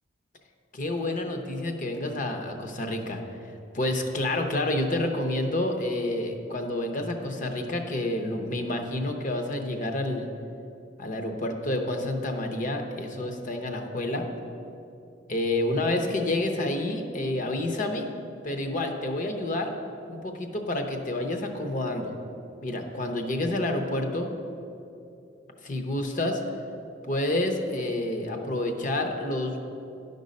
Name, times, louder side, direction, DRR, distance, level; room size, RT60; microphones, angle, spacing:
voice 1, 0.7-3.2 3.7-10.3 11.0-14.3 15.3-18.1 18.4-19.7 20.1-22.1 22.6-24.3 25.6-26.4 27.1-29.5, left 1 dB, 40° left, 5 dB, 0.8 m, -29 dB
11.0 x 5.3 x 5.3 m, 2.7 s
head